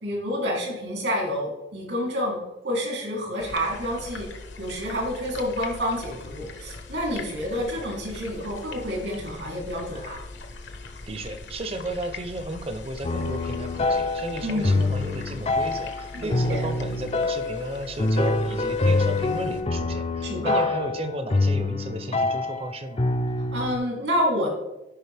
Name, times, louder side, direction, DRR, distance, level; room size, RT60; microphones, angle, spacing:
voice 1, 0.0-2.4 2.6-4.3 4.6-10.2 14.4-14.9 16.1-16.6 20.2-20.7 23.5-24.5, equal, 80° right, -1 dB, 3.1 m, -28 dB
sound 1, 3.4-19.6, left 3 dB, 75° left, 1.0 m, -41 dB
voice 2, 11.1-23.0, right 1 dB, 30° right, 9 dB, 0.7 m, -34 dB
sound 2, 13.0-23.8, left 2 dB, 35° left, 0.4 m, -25 dB
12.0 x 5.3 x 3.4 m, 0.99 s
head